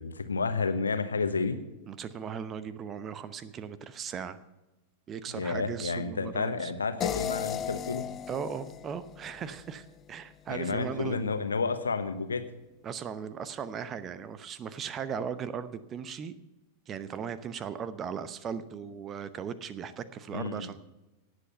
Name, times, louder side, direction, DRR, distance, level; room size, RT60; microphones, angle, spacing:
voice 1, 0.0-1.6 5.3-8.0 10.5-12.4 20.3-20.7, left 4 dB, 75° left, 10 dB, 1.2 m, -31 dB
voice 2, 1.9-4.4 5.1-6.7 8.3-11.3 12.8-16.3 16.9-20.8, right 7 dB, 25° right, 14 dB, 0.8 m, -38 dB
sound 1, 7.0-10.1, left 9 dB, 25° left, 0.3 m, -36 dB
17.5 x 8.0 x 5.4 m, 1.1 s
figure-of-eight pair, 90°, 0 cm